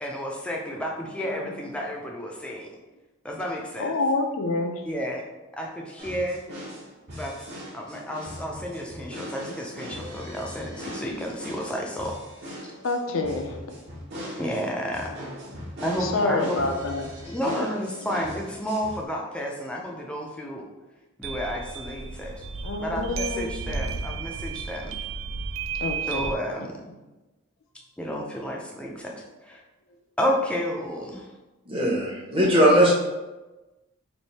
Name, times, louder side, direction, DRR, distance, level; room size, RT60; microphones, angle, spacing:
voice 1, 0.0-2.7 3.2-4.0 4.8-5.2 5.6-6.4 7.2-7.3 7.7-12.2 14.4-15.1 15.8-16.6 17.3-20.7 21.2-22.4 22.8-25.0 26.1-26.8 28.0-29.6 30.2-31.3, equal, 5° left, -1 dB, 0.4 m, -31 dB
voice 2, 3.8-4.8 12.8-13.8 15.5-15.6 16.0-17.1 17.5-17.7 22.6-23.8 25.8-26.2 26.6-26.7 32.4-32.7, left 2 dB, 70° left, 4 dB, 0.5 m, -28 dB
sound 1, 6.0-19.0, equal, 50° right, 1.1 m, -39 dB
sound 2, 21.2-26.4, right 5 dB, 70° right, 0.3 m, -33 dB
voice 3, 31.7-32.9, equal, 25° right, -3 dB, 0.9 m, -19 dB
3.3 x 2.6 x 4.1 m, 1.1 s
head